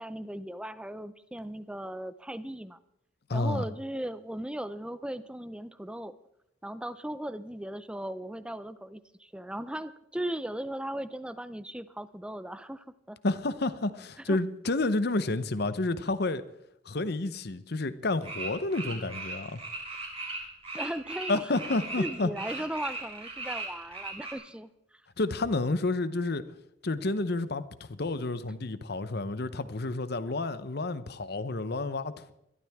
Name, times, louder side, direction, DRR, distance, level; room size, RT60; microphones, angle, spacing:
voice 1, 0.0-2.8 3.3-6.2 6.6-13.2 14.3-14.4 20.7-21.5 22.0-24.7, right 1 dB, 5° right, 14 dB, 0.5 m, -37 dB
voice 2, 3.3-3.6 13.2-16.4 16.8-19.6 21.3-22.3 25.2-26.4 26.8-32.3, left 2 dB, 60° left, 13 dB, 0.9 m, -30 dB
sound 1, 18.2-22.1 22.3-24.3, right 3 dB, 30° right, 4.8 m, -38 dB
22.0 x 12.5 x 3.6 m, 0.83 s
head